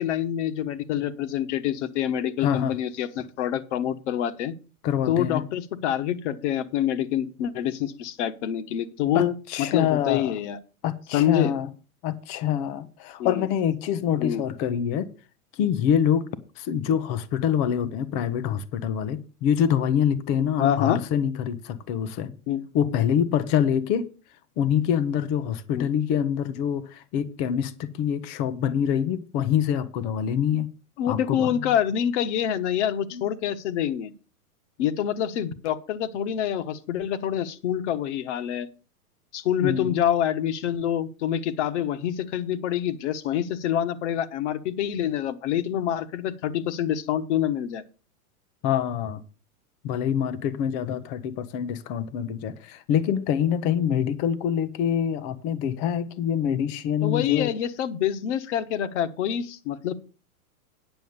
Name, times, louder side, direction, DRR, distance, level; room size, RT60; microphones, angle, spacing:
voice 1, 0.0-4.5 5.1-10.6 11.1-11.5 13.2-13.4 14.2-14.4 20.6-21.0 22.5-22.6 25.7-25.9 31.0-34.1 34.8-38.7 39.3-47.8 57.0-59.9, left 10 dB, 50° left, 1.2 m, -26 dB
voice 2, 2.4-2.8 4.8-5.4 9.1-10.3 10.8-11.7 12.0-15.1 15.6-16.3 16.6-22.3 22.7-24.1 24.6-30.7 31.1-31.7 33.1-33.2 39.6-39.9 48.6-49.2 49.8-57.5, left 9 dB, 20° left, 0.4 m, -25 dB
9.4 x 6.3 x 6.9 m
hypercardioid pair, 145°, 45 cm